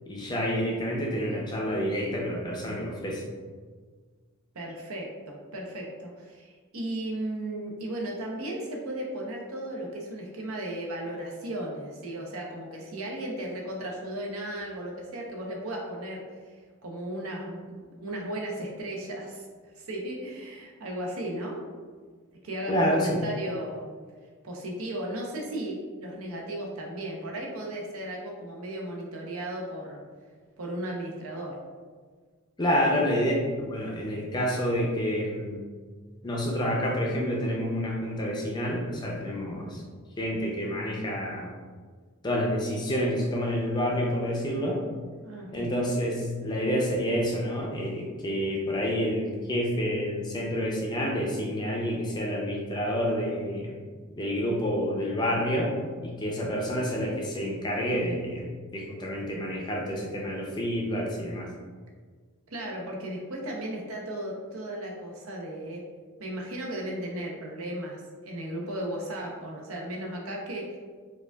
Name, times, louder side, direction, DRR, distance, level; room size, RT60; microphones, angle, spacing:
voice 1, 0.1-3.2 22.7-23.1 32.6-35.6 36.2-39.8 40.2-41.5 42.2-44.8 45.5-53.7 54.1-55.7 56.0-58.4 58.7-61.5, equal, 20° left, -2 dB, 0.5 m, -28 dB
voice 2, 4.5-19.4 19.8-21.6 22.4-23.9 24.4-30.0 30.6-31.6 32.7-33.0 45.2-45.7 62.5-65.8 66.2-70.8, right 1 dB, 80° right, -1 dB, 0.7 m, -35 dB
4.9 x 2.4 x 2.2 m, 1.5 s
head